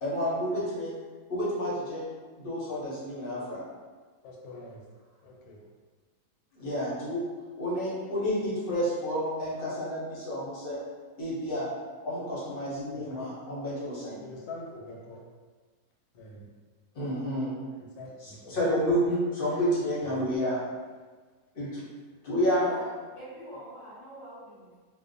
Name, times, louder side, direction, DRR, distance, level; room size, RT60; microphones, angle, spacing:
voice 1, 0.0-0.9 1.3-2.0 2.4-3.6 6.5-7.2 7.6-10.8 11.2-11.7 12.0-14.2 16.9-17.6 18.2-20.6 21.5-21.8 22.2-22.8, equal, 50° left, -7 dB, 0.7 m, -30 dB
voice 2, 4.2-4.8 5.2-5.6 12.9-13.2 14.2-15.2 16.1-16.5 18.0-18.6 20.0-20.3, left 2 dB, 85° left, -2 dB, 1.1 m, -45 dB
voice 3, 23.2-24.7, right 1 dB, 40° right, -11 dB, 0.5 m, -44 dB
2.4 x 2.1 x 2.5 m, 1.4 s
omnidirectional pair, 1.6 m